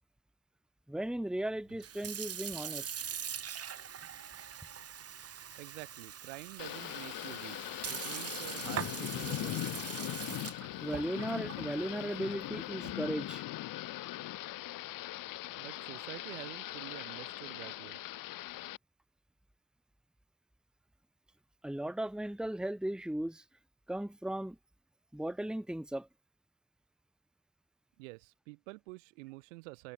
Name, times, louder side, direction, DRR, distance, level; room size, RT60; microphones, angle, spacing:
voice 1, 0.9-3.0 10.8-13.4 21.6-23.4 23.9-24.6 25.1-26.1, right 1 dB, ahead, 1.7 m, -36 dB
Sink (filling or washing) / Fill (with liquid), 1.7-13.2, right 9 dB, 40° right, 2.7 m, -43 dB
voice 2, 5.5-7.6 7.9-9.8 15.6-18.0 28.0-29.9, right 26 dB, 75° right, 5.7 m, -48 dB
Thunder / Rain, 6.6-18.8, left 16 dB, 60° left, 4.4 m, -40 dB
hypercardioid pair, 65°, 37 cm